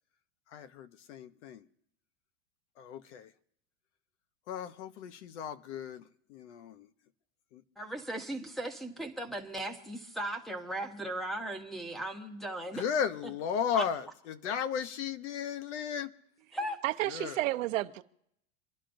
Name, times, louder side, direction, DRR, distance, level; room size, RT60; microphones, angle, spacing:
voice 1, 0.5-1.7 2.8-3.3 4.5-6.0 6.3-6.9 7.5-7.6 12.7-16.1 17.1-17.3, left 7 dB, 60° left, 0.9 m, -35 dB
voice 2, 7.8-12.8 13.7-13.8 16.5-16.8, right 1 dB, ahead, 0.8 m, -37 dB
voice 3, 16.6-18.0, right 16 dB, 70° right, 0.8 m, -32 dB
27.0 x 11.5 x 2.6 m
supercardioid pair, 155°, 40 cm